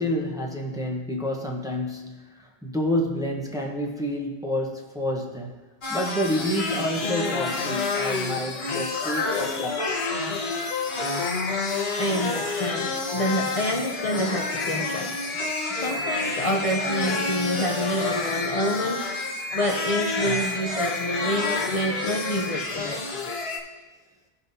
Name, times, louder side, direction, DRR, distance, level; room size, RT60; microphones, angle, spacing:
voice 1, 0.0-5.6 5.9-9.8 15.7-15.8, left 1 dB, 5° right, 0 dB, 0.9 m, -29 dB
sound 1, 5.8-23.6, left 3 dB, 65° left, 1.5 m, -28 dB
voice 2, 12.0-15.2 15.7-23.2, equal, 40° left, -1 dB, 0.7 m, -28 dB
16.5 x 5.6 x 2.7 m, 1.2 s
omnidirectional pair, 1.1 m